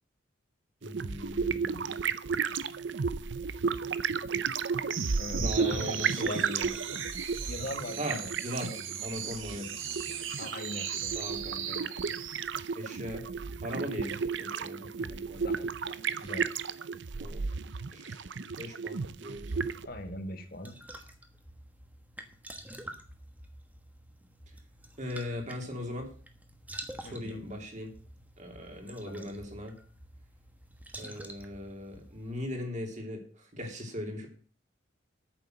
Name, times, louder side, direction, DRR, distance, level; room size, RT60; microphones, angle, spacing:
voice 1, 0.8-1.9 5.3-6.7 8.0-8.2 8.4-8.7 9.0-9.8 11.1-11.9 12.7-13.2 13.6-15.5 17.2-17.4 17.9-18.2 18.6-19.7 25.0-26.1 27.0-27.9 28.4-29.7 31.0-34.3, left 1 dB, 40° right, 2 dB, 2.9 m, -39 dB
sound 1, 0.8-19.9, right 5 dB, 65° right, 0.6 m, -33 dB
sound 2, 4.9-12.5, right 8 dB, 90° right, 1.5 m, -38 dB
voice 2, 5.2-6.5 7.5-8.8 9.1-9.2 10.4-11.2 13.2-13.3 15.4-16.5 19.8-20.7 27.0-27.4 29.0-29.3, left 1 dB, 50° left, 7 dB, 1.5 m, -41 dB
sound 3, 19.7-32.6, right 1 dB, 10° right, 1.2 m, -49 dB
9.0 x 6.8 x 7.8 m, 0.42 s
head